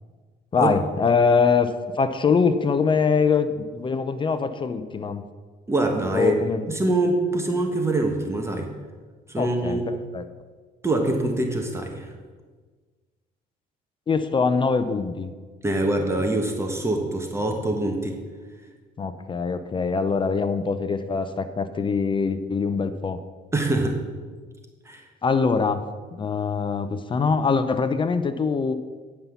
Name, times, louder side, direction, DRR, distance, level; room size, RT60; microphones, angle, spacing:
voice 1, 0.5-5.2 6.1-6.7 9.4-9.8 10.1-10.2 14.1-15.3 19.0-23.2 25.2-25.8 26.1-28.7, left 5 dB, 30° left, 11 dB, 0.6 m, -23 dB
voice 2, 5.7-6.3 6.7-8.7 9.3-9.8 10.8-12.1 15.6-18.2 23.5-24.0 24.8-25.0, right 2 dB, 15° right, 3 dB, 1.2 m, -24 dB
9.6 x 5.6 x 7.0 m, 1.4 s
cardioid pair, 110°, 17 cm